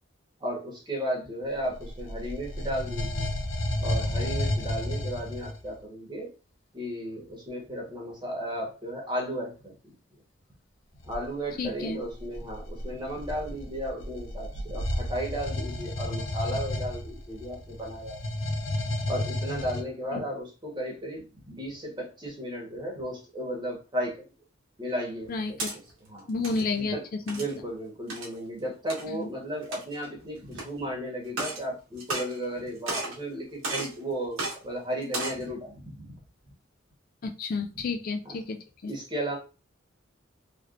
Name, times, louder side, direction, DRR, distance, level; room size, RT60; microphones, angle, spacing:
voice 1, 0.4-3.3 3.8-6.3 6.7-9.7 11.0-18.2 18.8-24.2 24.8-25.6 26.1-26.3 26.9-27.0 27.3-36.2 38.2-38.4 38.9-39.4, equal, 25° right, -1 dB, 1.1 m, -34 dB
sound 1, 1.6-5.7 11.0-11.2 12.0-19.8, left 1 dB, 80° left, 0.7 m, -32 dB
voice 2, 11.6-12.0 20.1-20.2 25.3-25.7 26.3-27.0 27.3-27.4 29.1-29.3 37.2-38.9, left 4 dB, 45° left, 7 dB, 0.3 m, -31 dB
sound 2, 25.2-25.7 26.3-26.6 27.3-27.6 28.1-28.3 28.9-29.0 29.6-30.0 30.5-30.6 31.3-31.6 32.0-32.6 32.9-33.2 33.6-33.9 34.4-34.5 35.0-35.4, right 2 dB, 85° right, 1.3 m, -33 dB
3.1 x 3.1 x 2.4 m, 0.33 s
head